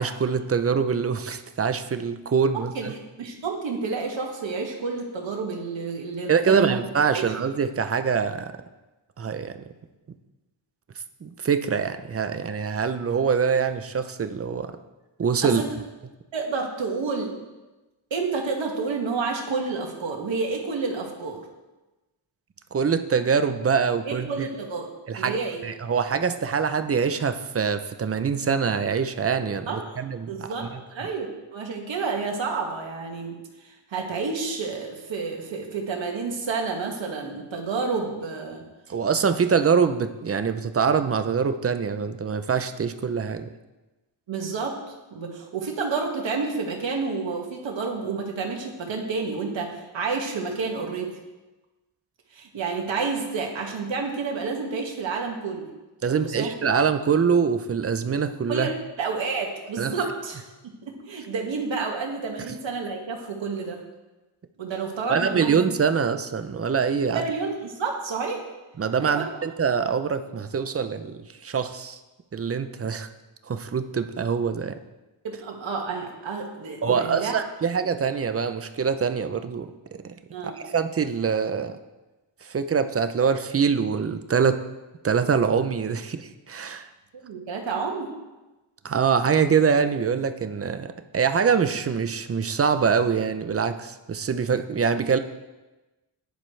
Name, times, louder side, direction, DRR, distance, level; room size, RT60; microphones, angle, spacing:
voice 1, 0.0-2.9 6.3-8.5 9.2-9.5 11.2-14.7 15.2-15.6 22.7-24.5 25.1-25.4 25.6-30.7 38.9-43.5 56.0-58.7 59.8-59.9 65.1-67.2 68.8-72.0 72.3-73.1 73.5-74.8 76.8-79.7 80.0-80.1 80.4-81.8 82.4-84.6 85.0-86.9 88.8-95.2, right 6 dB, 30° right, 9 dB, 0.5 m, -24 dB
voice 2, 2.5-2.9 3.2-6.8 7.1-7.2 15.4-15.7 16.3-17.3 18.1-21.4 24.0-24.9 25.2-25.6 29.7-30.0 30.3-31.3 31.5-33.4 33.6-38.6 44.3-44.7 45.1-51.1 52.3-55.7 56.1-56.5 58.5-60.4 60.8-63.8 64.6-65.6 67.1-68.4 69.0-69.2 75.2-77.4 80.3-80.6 87.2-88.1, right 4 dB, 70° right, 1 dB, 2.0 m, -30 dB
15.0 x 10.5 x 3.3 m, 1.1 s
wide cardioid pair, 175°, 47 cm